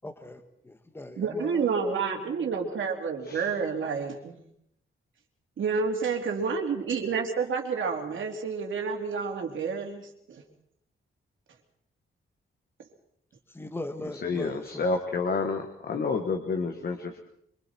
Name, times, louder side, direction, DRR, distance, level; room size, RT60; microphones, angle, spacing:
voice 1, 0.0-2.5 6.6-6.9 13.5-14.8, left 1 dB, 10° left, 7 dB, 1.5 m, -41 dB
voice 2, 1.2-4.4 5.6-10.4, right 5 dB, 70° right, 2 dB, 3.5 m, -29 dB
voice 3, 3.2-3.5 14.0-17.2, left 4 dB, 50° left, 4 dB, 1.7 m, -30 dB
25.5 x 24.5 x 4.6 m, 0.72 s
wide cardioid pair, 175°, 21 cm